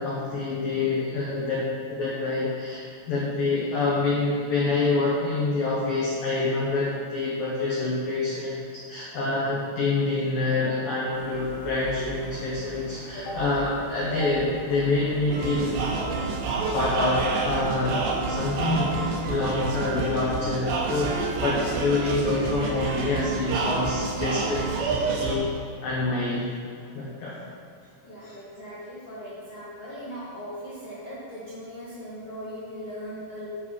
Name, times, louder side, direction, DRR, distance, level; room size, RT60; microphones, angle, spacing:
voice 1, 0.0-15.8 16.7-21.1 21.4-25.5 25.8-26.5 26.9-27.4 28.2-28.3, left 3 dB, 85° left, -6 dB, 2.0 m, -26 dB
sound 1, 11.1-23.5, right 2 dB, 90° right, 5.2 m, -40 dB
sound 2, 15.3-25.4, right 4 dB, 75° right, 2.8 m, -29 dB
voice 2, 28.0-33.5, equal, 65° left, -11 dB, 1.5 m, -39 dB
9.9 x 5.6 x 4.9 m, 2.4 s
omnidirectional pair, 5.9 m